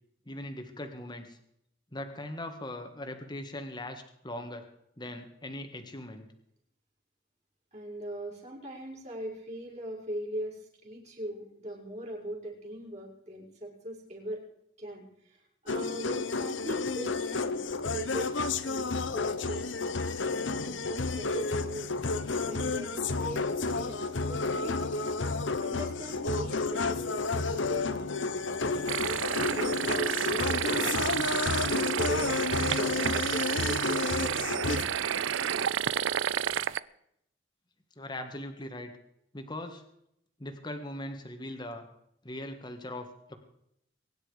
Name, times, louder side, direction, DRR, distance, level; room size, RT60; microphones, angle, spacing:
voice 1, 0.3-1.4 1.9-4.6 5.0-6.3 38.0-38.9 39.3-39.8 40.4-41.9 42.2-43.4, left 1 dB, 20° left, 5 dB, 1.7 m, -40 dB
voice 2, 7.7-14.4 14.8-19.9 20.2-21.9 22.4-31.1 31.6-35.1, equal, 35° right, -2 dB, 5.7 m, -41 dB
sound 1, 15.7-34.8, left 3 dB, 75° left, 1.1 m, -31 dB
sound 2, 28.9-36.8, right 9 dB, 80° right, 0.5 m, -31 dB
23.5 x 10.5 x 5.1 m, 0.75 s
head